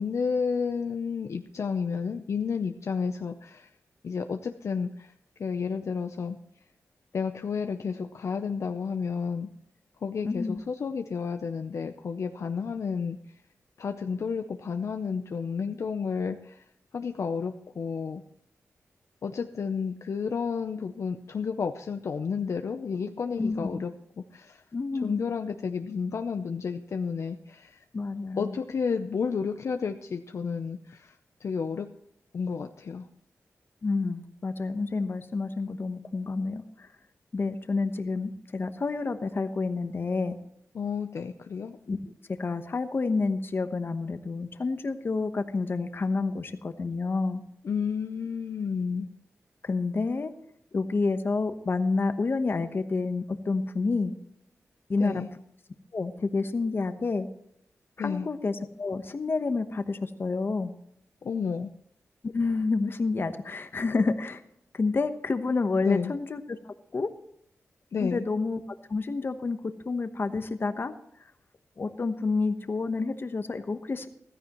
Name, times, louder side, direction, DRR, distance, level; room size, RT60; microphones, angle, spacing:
voice 1, 0.0-3.7 4.0-5.1 5.4-6.4 7.1-9.5 10.0-13.2 13.8-16.6 16.9-18.2 19.2-23.9 24.2-24.6 25.0-27.8 28.4-31.2 31.4-31.9 32.3-33.0 40.7-41.8 47.6-49.1 55.0-55.3 58.0-58.3 61.2-61.7 65.8-66.1 67.9-68.2, left 5 dB, 65° left, 7 dB, 0.6 m, -31 dB
voice 2, 10.2-10.6 23.4-23.8 24.7-25.2 27.9-28.6 33.8-36.9 37.3-40.4 41.9-47.4 49.6-50.3 50.7-54.1 54.9-55.2 55.9-57.3 58.0-60.7 62.2-64.4 64.7-67.1 68.0-68.6 68.9-69.6 69.8-70.9 71.8-74.1, left 3 dB, 45° left, 9 dB, 1.1 m, -29 dB
15.0 x 13.5 x 3.0 m, 0.73 s
wide cardioid pair, 100°, 5 cm